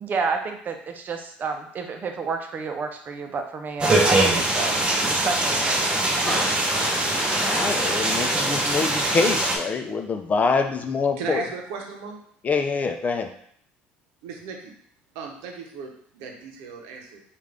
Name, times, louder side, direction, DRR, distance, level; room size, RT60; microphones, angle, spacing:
voice 1, 0.0-6.6, right 4 dB, 40° right, 5 dB, 0.7 m, -30 dB
sound 1, 3.8-9.6, right 2 dB, 20° right, 1.0 m, -22 dB
sound 2, 6.3-9.5, left 1 dB, 15° left, 1.7 m, -33 dB
voice 2, 7.4-11.4 12.4-13.3, left 4 dB, 35° left, 6 dB, 0.5 m, -25 dB
voice 3, 11.2-12.2 14.2-14.7 15.1-17.2, right 4 dB, 80° right, 2 dB, 0.8 m, -36 dB
5.0 x 2.5 x 3.4 m, 0.64 s
supercardioid pair, 90°, 5 cm